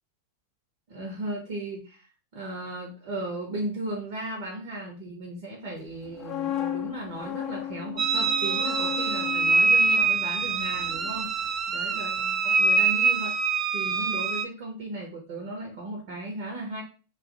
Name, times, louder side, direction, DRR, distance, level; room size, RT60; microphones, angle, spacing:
voice 1, 0.9-2.1 2.3-11.3 11.7-12.1 12.4-13.4 13.7-16.8, right 1 dB, 50° right, -2 dB, 1.0 m, -36 dB
sound 1, 5.9-11.9 12.2-12.4, left 10 dB, 25° left, 0.5 m, -36 dB
sound 2, 8.0-14.5, right 4 dB, 30° right, 0.3 m, -24 dB
2.8 x 2.5 x 3.8 m, 0.37 s
figure-of-eight pair, 90°, 0 cm